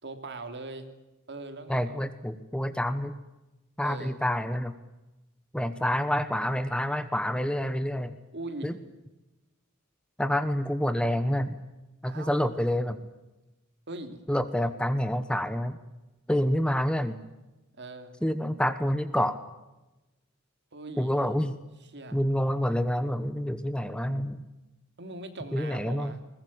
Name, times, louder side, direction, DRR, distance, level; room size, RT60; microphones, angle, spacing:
voice 1, 0.0-0.9 1.3-2.0 3.8-4.2 8.3-8.7 12.1-12.4 13.9-14.2 17.8-18.1 20.7-21.1 21.9-22.2 25.0-26.2, right 2 dB, 55° right, 8 dB, 3.0 m, -40 dB
voice 2, 1.7-3.1 3.8-4.7 5.5-8.1 8.6-8.8 10.2-11.6 12.0-13.0 14.3-15.8 16.3-17.2 18.2-19.4 21.0-21.6 22.1-24.4 25.5-26.2, equal, 5° left, 11 dB, 1.1 m, -28 dB
21.5 x 20.0 x 8.6 m, 1.0 s
head